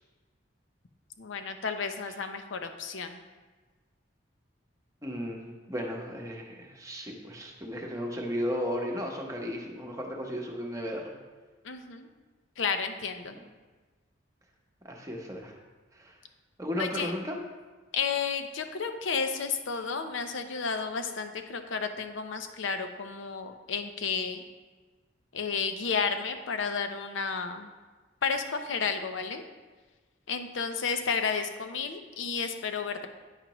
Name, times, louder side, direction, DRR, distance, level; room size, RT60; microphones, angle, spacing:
voice 1, 1.2-3.2 11.6-12.1 12.6-13.4 16.8-17.1 17.9-24.4 25.3-27.7 28.2-29.4 30.3-33.1, left 5 dB, 85° left, 7 dB, 0.6 m, -32 dB
voice 2, 5.0-11.2 14.8-15.5 15.9-16.2 16.6-17.4, equal, 15° right, 0 dB, 0.8 m, -35 dB
8.9 x 5.8 x 3.0 m, 1.3 s
head